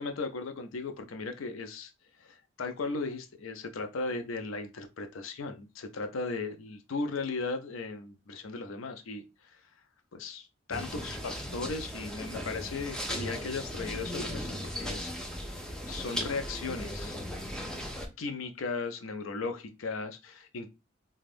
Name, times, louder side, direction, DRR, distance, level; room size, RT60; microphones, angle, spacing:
voice 1, 0.0-1.9 2.2-9.2 10.1-15.1 15.9-17.2 18.2-20.7, left 3 dB, 85° left, 7 dB, 0.5 m, -36 dB
sound 1, 10.7-18.1, equal, 5° left, 0.5 m, -37 dB
2.5 x 2.3 x 3.3 m, 0.26 s
head